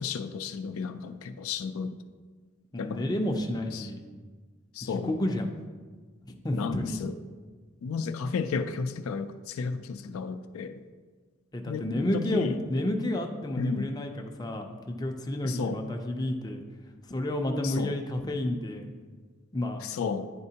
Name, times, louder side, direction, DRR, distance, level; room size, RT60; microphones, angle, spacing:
voice 1, 0.0-1.9 2.8-3.2 3.7-3.9 4.7-5.1 6.5-7.1 7.8-10.8 11.7-11.9 12.1-12.5 13.6-13.9 15.4-15.8 17.6-17.9 19.8-20.3, left 5 dB, 80° left, 10 dB, 0.4 m, -33 dB
voice 2, 2.7-4.0 4.8-5.5 6.4-7.0 11.5-16.6 17.1-18.9 19.5-19.9, left 1 dB, 20° left, 3 dB, 0.5 m, -30 dB
10.0 x 4.3 x 2.8 m, 1.5 s
head